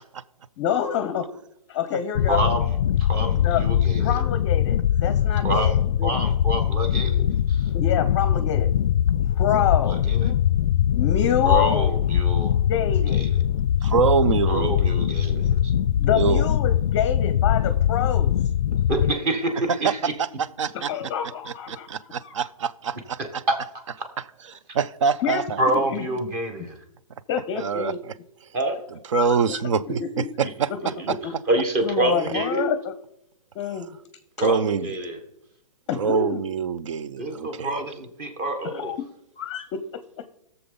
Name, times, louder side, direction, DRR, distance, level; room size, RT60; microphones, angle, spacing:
voice 1, 0.6-1.3 1.7-2.4 3.4-3.6 4.0-6.1 7.7-8.7 9.2-10.0 11.0-11.9 12.7-13.3 16.0-18.3 20.7-21.9 22.2-22.3 25.2-25.5 25.9-26.0 27.3-28.0 29.1-29.6 29.9-30.3 30.7-30.8 31.1-31.3 31.8-32.9 33.5-34.0 35.9-36.4 38.7-39.1 39.4-40.2, left 8 dB, 25° left, 0.7 m, -27 dB
sound 1, 2.1-19.1, left 10 dB, 55° left, 0.4 m, -22 dB
voice 2, 2.3-4.2 5.4-7.7 9.8-10.3 11.4-12.6 13.1-13.5 14.5-15.7 18.9-20.0 23.2-23.6 25.6-26.8 28.5-28.8 30.4-30.5 31.0-31.2 31.5-32.7 34.4-35.2 37.2-39.0, right 2 dB, 25° right, 1.4 m, -27 dB
voice 3, 13.8-14.8 16.1-16.5 19.8-19.9 20.6-20.9 21.5-23.4 24.7-25.6 27.5-28.1 29.1-31.2 33.7-33.8 34.4-34.9 35.9-37.7, right 6 dB, 55° right, 0.6 m, -25 dB
16.5 x 6.9 x 3.9 m
hypercardioid pair, 155°, 19 cm